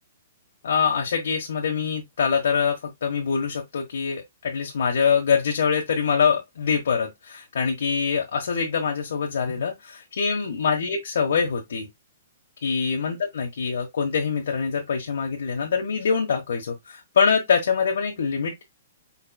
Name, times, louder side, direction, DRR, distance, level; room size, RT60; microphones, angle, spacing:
voice 1, 0.6-11.9 12.6-18.6, left 6 dB, 75° left, 1.2 m, -24 dB
5.2 x 4.3 x 2.2 m
hypercardioid pair, 145°, 0 cm